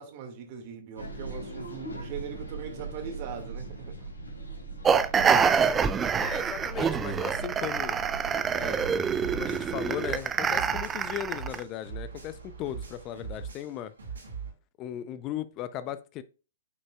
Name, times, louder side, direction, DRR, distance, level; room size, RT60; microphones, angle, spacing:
voice 1, 0.0-4.1, right 7 dB, 45° right, 1.9 m, -40 dB
sound 1, 1.0-9.9, right 3 dB, 85° left, 2.4 m, -40 dB
sound 2, 4.8-11.6, right 6 dB, 15° right, 0.5 m, -26 dB
voice 2, 6.2-8.0 8.6-8.8 9.3-13.9 14.8-16.2, left 11 dB, 30° left, 0.5 m, -37 dB
sound 3, 9.2-14.5, right 6 dB, 80° right, 3.5 m, -41 dB
9.5 x 5.3 x 2.3 m
figure-of-eight pair, 120°, 0 cm